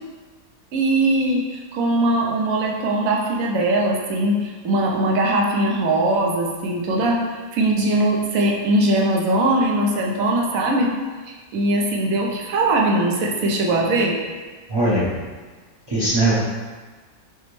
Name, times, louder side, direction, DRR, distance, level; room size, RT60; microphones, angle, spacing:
voice 1, 0.7-7.2 7.5-10.9 11.3-14.2, right 1 dB, 70° right, -1 dB, 1.1 m, -20 dB
voice 2, 14.7-15.1 15.9-16.3, right 1 dB, 25° right, -10 dB, 0.6 m, -19 dB
5.8 x 2.1 x 3.0 m, 1.4 s
omnidirectional pair, 1.5 m